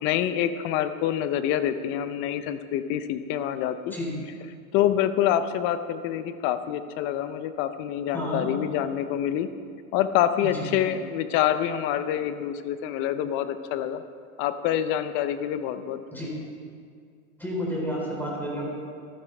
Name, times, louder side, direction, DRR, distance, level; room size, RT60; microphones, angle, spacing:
voice 1, 0.0-3.9 4.7-9.5 9.9-14.0 14.4-16.0, left 10 dB, 30° left, 11 dB, 0.5 m, -26 dB
voice 2, 8.1-8.5 10.4-10.7 16.1-16.3 17.4-18.7, equal, 5° left, -4 dB, 3.6 m, -31 dB
14.0 x 12.5 x 3.3 m, 2.2 s
hypercardioid pair, 125°, 43 cm